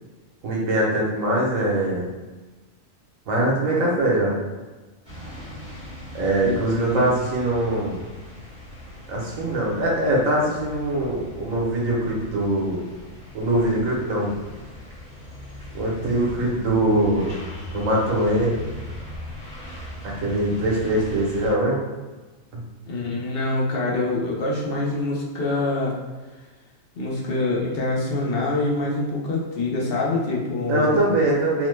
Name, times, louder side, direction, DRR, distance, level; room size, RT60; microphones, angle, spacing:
voice 1, 0.4-2.1 3.3-4.4 6.1-8.0 9.1-12.8 13.3-14.3 15.7-17.3 17.7-18.5 20.0-21.8 22.5-22.6 30.7-31.7, right 1 dB, 85° right, -3 dB, 1.2 m, -22 dB
sound 1, 5.0-21.5, left 1 dB, 35° right, 1.2 m, -39 dB
voice 2, 6.4-7.1 22.8-26.0 27.0-31.0, left 2 dB, 55° left, -4 dB, 0.8 m, -25 dB
2.9 x 2.1 x 3.1 m, 1.3 s
omnidirectional pair, 1.4 m